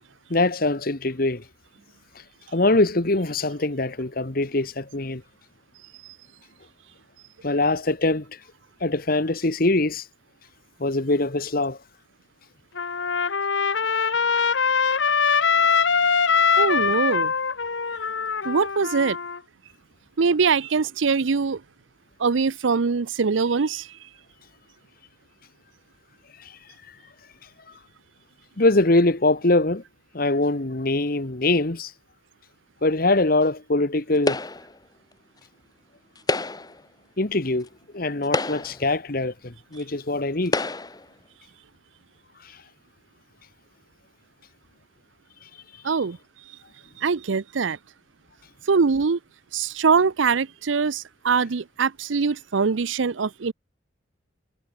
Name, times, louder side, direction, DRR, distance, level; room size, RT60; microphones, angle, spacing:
voice 1, 0.3-1.4 2.5-5.2 7.4-8.4 8.8-10.0 10.8-11.8 28.6-29.8 30.1-31.9 32.8-34.4 37.2-37.7 37.9-40.6, left 2 dB, 50° left, 1.5 m, -23 dB
Trumpet, 12.8-19.4, left 6 dB, 75° left, 1.2 m, -22 dB
voice 2, 16.6-17.3 18.4-19.2 20.2-21.6 22.2-23.9 45.8-46.2 47.0-47.8 48.7-49.2 49.5-53.5, right 5 dB, 90° right, 0.6 m, -22 dB
sound 1, 34.3-34.8 36.1-36.8 37.7-37.8 38.2-38.9 39.8-39.9 40.5-41.0, left 2 dB, 20° left, 1.1 m, -28 dB
head